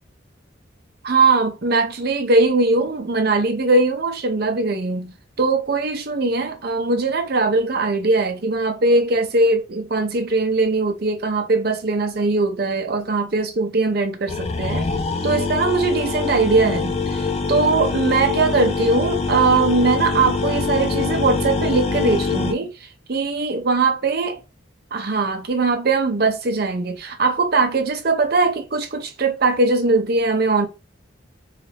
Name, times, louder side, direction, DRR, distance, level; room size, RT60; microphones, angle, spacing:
voice 1, 1.0-14.9 15.2-24.4 24.9-30.7, right 3 dB, 50° right, 0.6 m, -20 dB
sound 1, 14.3-22.5, left 4 dB, 30° left, 0.4 m, -24 dB
3.2 x 2.6 x 3.3 m
head